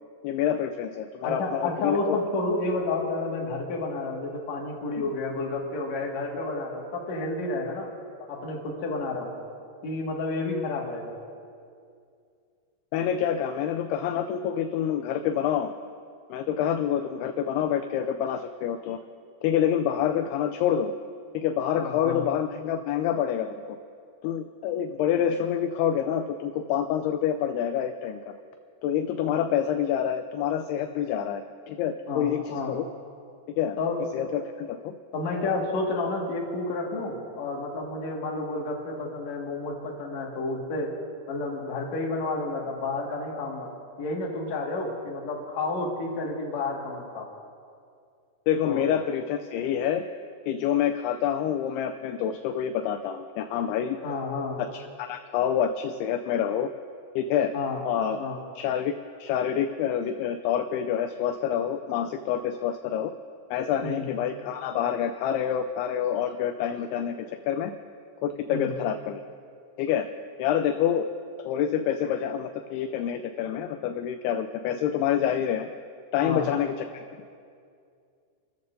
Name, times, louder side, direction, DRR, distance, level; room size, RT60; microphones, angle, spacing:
voice 1, 0.2-2.2 4.9-5.0 12.9-15.7 16.3-19.0 19.4-20.9 21.3-23.8 24.2-28.2 28.8-32.8 33.6-33.8 34.1-34.9 48.5-50.0 50.5-54.0 54.7-56.7 57.2-57.5 57.9-58.2 58.6-58.9 59.2-63.1 63.5-67.7 68.2-69.2 69.8-70.1 70.4-71.1 71.4-75.7 76.1-77.0, left 9 dB, 85° left, 8 dB, 2.4 m, -27 dB
voice 2, 1.2-7.9 8.3-9.3 9.8-11.1 21.7-22.2 32.1-32.7 33.8-34.0 35.1-40.9 41.3-43.7 44.0-47.3 48.6-48.8 54.0-54.6 57.5-57.8 58.2-58.4 63.8-64.1 68.5-68.7 76.2-76.5, left 3 dB, 50° left, -2 dB, 2.6 m, -30 dB
28.0 x 14.0 x 2.7 m, 2.3 s
omnidirectional pair, 4.9 m